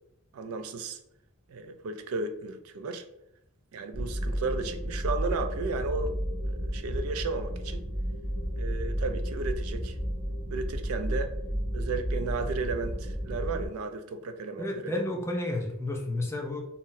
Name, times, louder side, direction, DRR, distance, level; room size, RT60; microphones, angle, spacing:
voice 1, 0.3-1.0 1.5-3.0 3.7-6.2 6.4-7.8 8.6-10.0 10.5-11.3 11.7-14.9, right 3 dB, 80° right, 8 dB, 0.4 m, -34 dB
sound 1, 3.9-13.7, equal, 10° right, 1.4 m, -32 dB
voice 2, 14.6-16.6, left 1 dB, 10° left, 1 dB, 0.4 m, -31 dB
3.8 x 2.1 x 2.6 m, 0.80 s
head